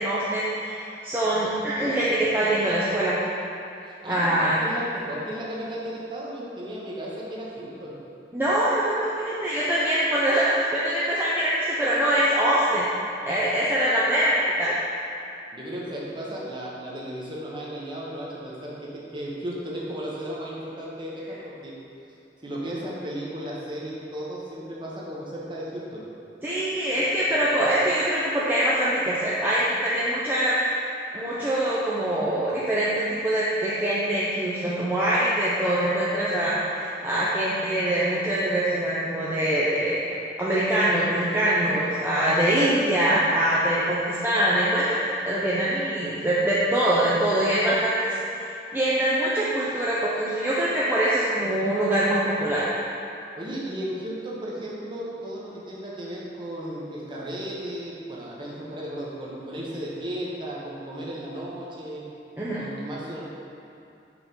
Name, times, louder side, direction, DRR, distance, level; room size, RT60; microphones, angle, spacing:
voice 1, 0.0-3.2 4.1-4.6 8.3-12.9 13.2-14.8 26.4-30.5 31.1-40.0 40.4-45.0 45.3-48.2 48.7-52.7 62.4-62.6, right 1 dB, 10° right, -9 dB, 0.5 m, -23 dB
voice 2, 3.8-7.9 15.5-21.7 22.4-26.0 53.4-62.0 62.6-63.2, right 1 dB, 25° right, -5 dB, 0.9 m, -35 dB
4.8 x 3.8 x 5.3 m, 2.6 s
head